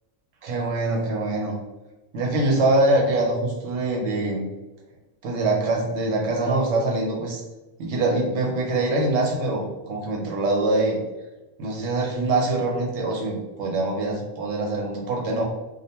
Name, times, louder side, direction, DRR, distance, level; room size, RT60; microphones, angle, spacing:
voice 1, 0.4-1.6 2.1-4.5 5.2-7.4 7.8-11.0 11.6-15.4, right 2 dB, 60° right, -1 dB, 0.9 m, -24 dB
2.4 x 2.1 x 2.8 m, 1.1 s
omnidirectional pair, 1.5 m